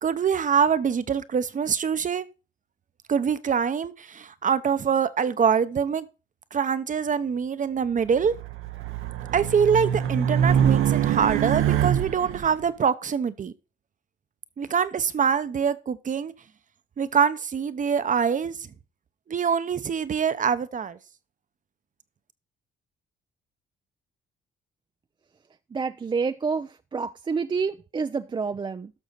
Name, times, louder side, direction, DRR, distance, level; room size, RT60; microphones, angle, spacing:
voice 1, 0.0-2.3 3.1-6.0 6.5-8.3 9.3-13.5 14.6-16.3 17.0-18.6 19.3-21.0, right 7 dB, 40° right, 0.8 m, -24 dB
Race car auto racing, 8.1-12.5, right 9 dB, 85° right, 1.0 m, -24 dB
voice 2, 25.7-28.9, right 5 dB, 25° right, 0.4 m, -28 dB
12.5 x 6.3 x 4.0 m
cardioid pair, 90°, 20 cm